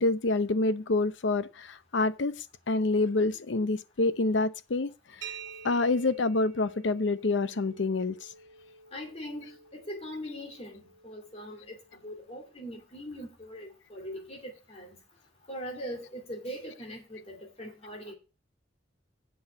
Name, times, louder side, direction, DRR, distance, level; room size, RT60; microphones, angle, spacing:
voice 1, 0.0-5.3 5.6-8.2, left 3 dB, 80° left, 0.7 m, -27 dB
sound 1, 5.2-12.8, right 5 dB, 85° right, 1.2 m, -49 dB
voice 2, 8.9-15.0 15.5-18.1, equal, 35° left, 2.6 m, -41 dB
7.8 x 5.8 x 7.7 m
head